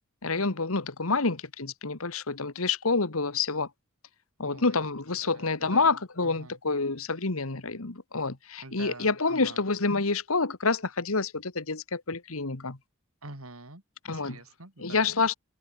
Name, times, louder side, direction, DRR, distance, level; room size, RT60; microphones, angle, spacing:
voice 1, 0.2-3.7 4.4-12.8 14.1-14.4 14.8-15.3, left 4 dB, 75° left, 1.8 m, -28 dB
voice 2, 4.4-4.8 5.2-5.9 6.2-6.6 8.6-9.6 13.2-13.8 14.1-15.1, right 2 dB, 75° right, 5.2 m, -46 dB
head